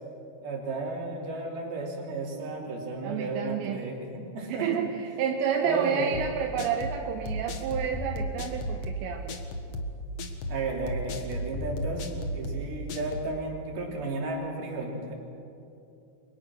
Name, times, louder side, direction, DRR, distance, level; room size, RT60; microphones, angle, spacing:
voice 1, 0.4-4.8 5.6-6.1 10.5-15.1, right 3 dB, 60° right, -1 dB, 5.3 m, -33 dB
voice 2, 3.0-3.8 4.5-9.4, right 7 dB, 85° right, 3 dB, 3.4 m, -30 dB
sound 1, 6.1-13.3, equal, 55° left, 1.9 m, -34 dB
30.0 x 24.0 x 6.3 m, 2.7 s
omnidirectional pair, 5.1 m